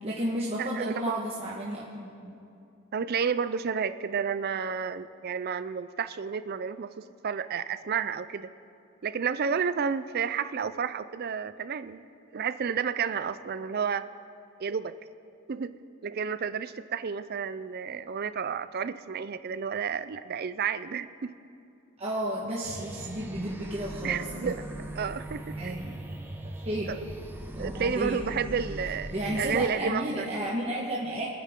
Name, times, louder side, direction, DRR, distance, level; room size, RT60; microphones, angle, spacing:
voice 1, 0.0-2.4 22.0-24.5 25.6-25.9 26.6-26.9 27.5-28.3 29.1-31.3, right 1 dB, 30° right, -5 dB, 1.3 m, -32 dB
voice 2, 0.6-1.1 2.9-8.5 9.0-12.0 12.3-14.0 14.6-14.9 15.5-15.8 16.0-21.3 24.0-24.6 24.9-25.7 26.9-27.0 27.6-30.3, right 6 dB, 45° right, 13 dB, 0.4 m, -31 dB
sound 1, 22.6-29.7, right 1 dB, 10° right, 0.8 m, -40 dB
24.5 x 9.6 x 3.7 m, 2.6 s
head